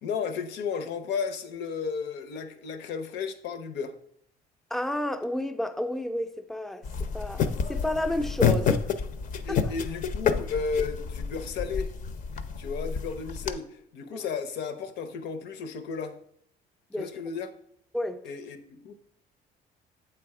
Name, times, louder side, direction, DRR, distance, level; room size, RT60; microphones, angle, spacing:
voice 1, 0.0-3.9 9.4-11.9 12.6-16.2 17.0-17.5 18.2-18.9, left 5 dB, 85° left, 0.7 m, -33 dB
voice 2, 4.7-8.9 9.5-9.6 14.1-14.2 16.9-17.1 17.9-18.2, left 1 dB, ahead, 0.4 m, -31 dB
sound 1, 6.8-13.5, left 6 dB, 50° left, 0.5 m, -29 dB
7.7 x 3.4 x 4.8 m
cardioid pair, 110°, 17 cm